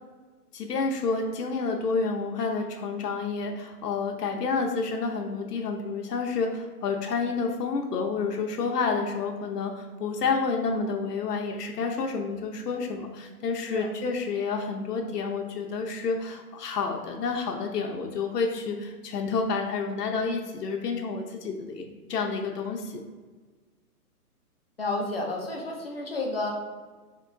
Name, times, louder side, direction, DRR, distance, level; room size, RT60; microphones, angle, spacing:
voice 1, 0.5-21.8 22.1-23.0, left 4 dB, 90° left, 2 dB, 0.6 m, -29 dB
voice 2, 24.8-26.5, left 2 dB, 40° left, 0 dB, 0.4 m, -31 dB
3.7 x 3.0 x 2.5 m, 1.4 s
hypercardioid pair, 175°, 46 cm